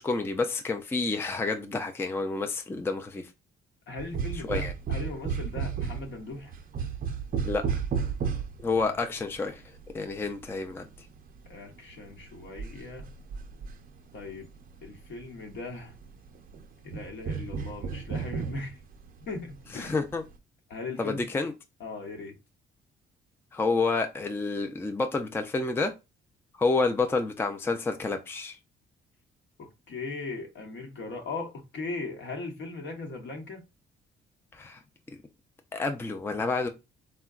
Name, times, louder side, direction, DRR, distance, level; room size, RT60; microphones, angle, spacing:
voice 1, 0.0-3.3 4.3-4.7 7.4-7.6 8.6-9.6 9.9-10.9 19.7-20.2 21.0-21.5 23.5-25.9 26.6-28.6 34.5-34.8 35.7-36.7, left 3 dB, 10° left, 0.4 m, -29 dB
voice 2, 3.9-6.5 9.0-9.1 11.5-13.1 14.1-14.5 14.8-16.0 16.8-18.8 19.3-20.0 20.7-21.4 21.8-22.4 29.6-33.6, left 3 dB, 65° left, 1.0 m, -38 dB
sound 1, 4.0-9.9 10.1-15.2 15.5-20.4, right 6 dB, 45° right, 0.5 m, -34 dB
3.7 x 2.1 x 2.3 m
cardioid pair, 90°, 20 cm